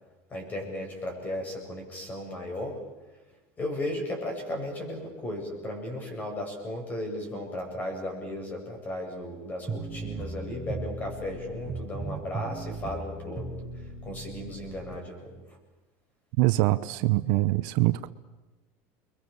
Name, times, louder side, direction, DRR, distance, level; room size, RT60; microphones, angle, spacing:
voice 1, 0.3-2.8 3.6-13.5 14.0-15.4, left 1 dB, 20° left, 2 dB, 7.4 m, -35 dB
sound 1, 9.7-15.0, right 3 dB, 5° right, 5.7 m, -37 dB
voice 2, 16.4-18.1, right 18 dB, 65° right, 12 dB, 0.9 m, -24 dB
29.5 x 22.5 x 7.1 m, 1.1 s
cardioid pair, 155°, 8 cm